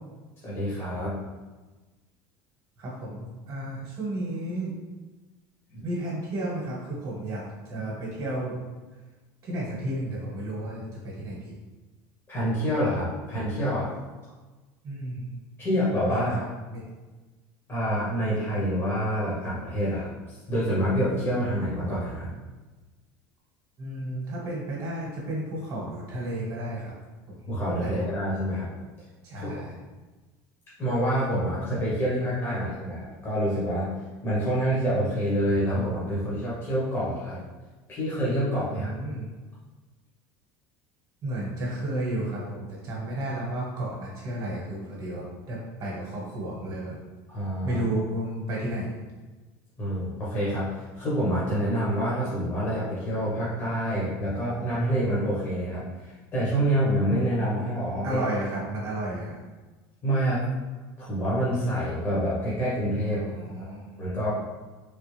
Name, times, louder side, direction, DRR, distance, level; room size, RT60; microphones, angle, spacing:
voice 1, 0.4-1.1 5.7-5.8 12.3-13.9 15.6-16.4 17.7-20.1 20.5-22.3 27.5-28.7 29.4-29.5 30.8-33.9 34.2-37.4 37.9-38.9 47.3-47.8 49.8-58.2 60.0-60.4 61.0-63.2 63.6-63.7 64.0-64.3, equal, 25° left, -8 dB, 1.1 m, -27 dB
voice 2, 2.8-4.7 5.8-8.6 9.4-11.6 14.8-15.3 16.1-16.8 23.8-26.9 27.3-27.4 27.8-28.0 29.2-29.8 38.7-39.3 41.2-47.0 47.6-49.0 58.0-59.4 63.0-63.9, right 1 dB, 40° right, -5 dB, 1.2 m, -32 dB
3.4 x 2.4 x 3.3 m, 1.2 s
supercardioid pair, 135°, 9 cm